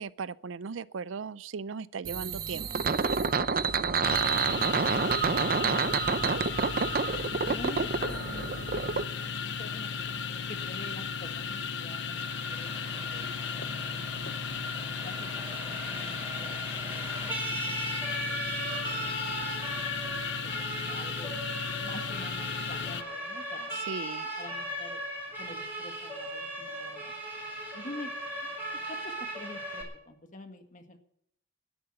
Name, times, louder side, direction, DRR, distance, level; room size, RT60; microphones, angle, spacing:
voice 1, 0.0-2.7 23.8-24.3, right 5 dB, 85° right, 0.5 m, -37 dB
sound 1, 2.0-9.0, right 5 dB, 45° right, 0.6 m, -28 dB
sound 2, 4.0-23.0, left 6 dB, 65° left, 0.9 m, -35 dB
voice 2, 7.5-13.2 13.9-15.3 15.6-17.0 17.5-19.8 20.0-21.3 21.8-23.9 24.4-25.0 25.4-27.1 27.7-28.3 28.9-31.0, left 1 dB, 40° left, 1.8 m, -47 dB
Siren, 12.1-29.8, right 1 dB, 10° right, 4.6 m, -38 dB
12.5 x 10.5 x 8.9 m
head